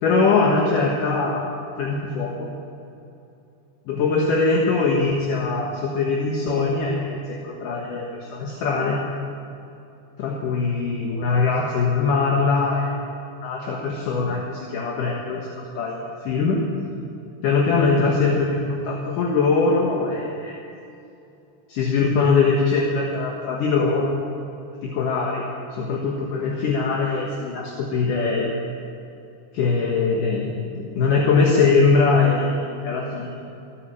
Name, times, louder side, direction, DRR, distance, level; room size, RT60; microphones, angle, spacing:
voice 1, 0.0-2.5 3.9-9.0 10.2-13.0 13.4-15.5 15.8-16.0 16.2-16.6 17.4-20.5 21.7-24.3 24.8-25.5 25.7-28.5 29.5-30.5 30.8-33.4, left 4 dB, 60° left, -1 dB, 2.5 m, -22 dB
16.0 x 9.9 x 8.8 m, 2.7 s
omnidirectional pair, 5.1 m